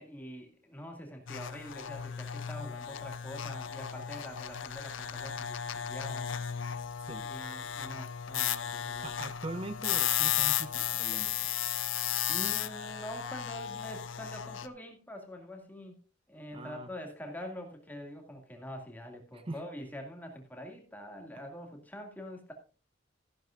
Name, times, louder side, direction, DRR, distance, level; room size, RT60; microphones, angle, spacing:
voice 1, 0.0-6.3 7.2-9.2 12.3-16.0 16.3-22.5, equal, 10° left, 2 dB, 2.2 m, -45 dB
sound 1, 1.3-14.7, left 10 dB, 85° left, 0.7 m, -34 dB
voice 2, 9.0-11.3 16.5-16.9 19.3-19.6, right 2 dB, 30° right, 10 dB, 0.5 m, -41 dB
14.5 x 11.0 x 2.5 m, 0.36 s
head